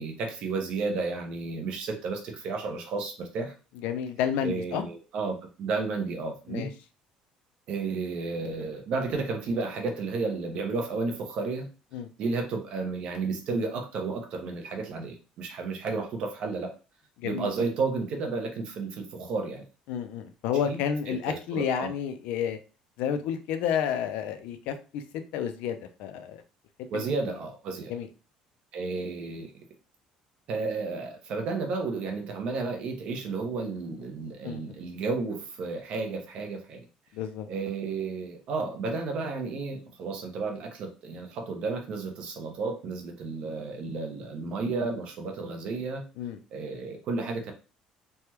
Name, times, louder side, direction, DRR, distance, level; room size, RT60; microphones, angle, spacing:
voice 1, 0.0-3.5 4.4-6.7 7.7-11.7 12.2-16.8 17.2-19.6 20.6-20.8 21.1-21.9 26.9-27.9 28.7-29.5 30.5-36.9 37.5-46.0 46.5-47.5, right 4 dB, 45° right, 3 dB, 0.7 m, -32 dB
voice 2, 3.8-4.8 6.5-6.7 11.9-12.1 17.2-17.5 19.9-22.6 23.0-25.0 25.3-26.4 26.9-27.0 27.9-28.1 34.4-34.8 37.1-37.5 46.2-46.4, left 8 dB, 75° left, 9 dB, 0.4 m, -30 dB
3.3 x 2.2 x 2.9 m, 0.33 s
cardioid pair, 180°, 2 cm